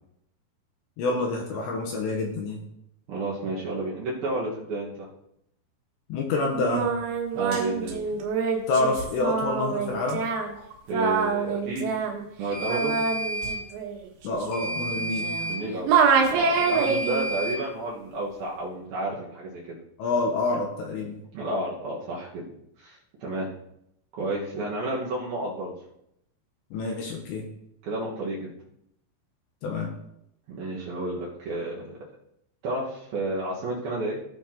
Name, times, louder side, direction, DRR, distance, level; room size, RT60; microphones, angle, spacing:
voice 1, 1.0-2.6 6.1-6.9 8.7-10.2 14.2-15.3 20.0-21.2 26.7-27.5 29.6-29.9, left 3 dB, 75° left, 1 dB, 2.9 m, -27 dB
voice 2, 3.1-5.1 7.3-8.0 10.9-11.9 12.4-13.2 15.5-15.9 16.3-19.8 21.3-22.4 22.8-23.5 24.1-25.7 27.8-28.5 30.5-32.0 32.6-34.2, right 2 dB, 60° right, -5 dB, 2.7 m, -31 dB
Singing, 6.5-15.6 15.9-17.3, right 5 dB, 90° right, 4.1 m, -26 dB
sound 1, 7.5-7.7 12.5-13.6 14.5-15.6 16.5-17.6, right 2 dB, 55° left, 2.7 m, -31 dB
17.0 x 5.7 x 2.9 m, 0.78 s
omnidirectional pair, 5.8 m